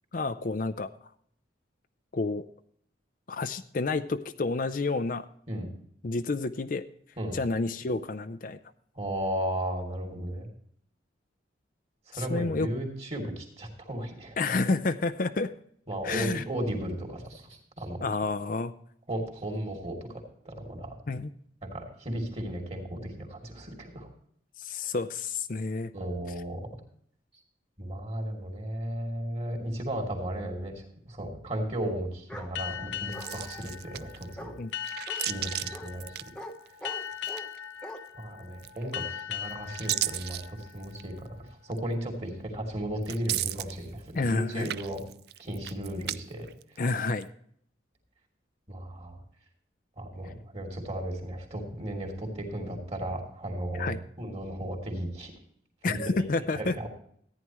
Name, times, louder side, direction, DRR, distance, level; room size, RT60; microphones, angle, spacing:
voice 1, 0.1-0.9 2.1-2.4 3.3-5.3 6.0-6.8 7.3-8.6 12.1-12.7 14.4-15.5 16.0-16.4 18.0-18.7 21.1-21.3 24.6-25.9 34.6-34.7 44.1-44.7 46.8-47.3 53.7-54.0 55.8-56.7, left 3 dB, 45° left, 10 dB, 0.5 m, -29 dB
voice 2, 9.0-10.5 12.1-14.4 15.9-18.0 19.1-20.9 21.6-24.1 24.7-24.9 25.9-26.7 27.8-34.5 35.3-36.1 38.1-45.0 45.4-46.5 48.7-49.2 50.0-55.3 55.8-56.3 56.5-56.9, right 1 dB, 35° right, 1 dB, 2.9 m, -35 dB
Bark, 32.3-32.5 33.1-33.7 34.4-34.6 35.1-35.2 35.7-35.9 36.3-36.5 36.8-37.5 37.8-38.0, equal, 5° left, 1.0 m, -42 dB
sound 1, 32.6-41.7, left 9 dB, 80° left, 0.8 m, -40 dB
sound 2, 33.1-34.3 34.8-36.8 37.1-37.8 38.6-39.1 39.5-41.1 41.7-41.8 43.0-44.3 44.5-46.2 46.5-47.2, right 14 dB, 55° right, 0.4 m, -35 dB
14.5 x 10.0 x 3.1 m, 0.65 s
head